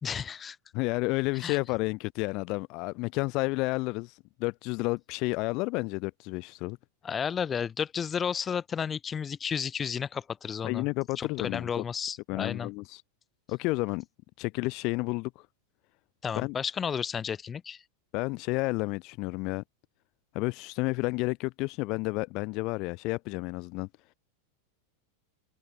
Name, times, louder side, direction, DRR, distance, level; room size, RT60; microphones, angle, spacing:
voice 1, 0.0-0.6 1.4-1.6 7.0-10.9 11.2-12.7 16.2-17.8, left 7 dB, 20° left, 2.3 m, -32 dB
voice 2, 0.7-6.8 10.6-11.7 12.3-13.0 13.5-14.0 14.4-15.5 16.3-16.5 18.1-19.6 20.3-23.9, left 25 dB, 40° left, 1.0 m, -31 dB
figure-of-eight pair, 90°, 0 cm